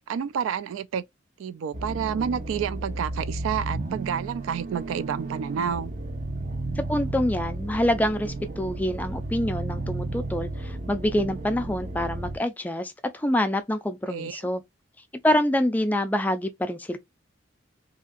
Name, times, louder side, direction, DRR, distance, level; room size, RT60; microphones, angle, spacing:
voice 1, 0.1-1.0 1.4-5.9 14.1-14.4, right 7 dB, 90° right, 0.3 m, -29 dB
sound 1, 1.7-12.4, right 2 dB, 40° right, 0.6 m, -33 dB
voice 2, 6.8-14.6 15.2-17.0, left 1 dB, 10° left, 0.3 m, -26 dB
2.8 x 2.5 x 2.4 m
head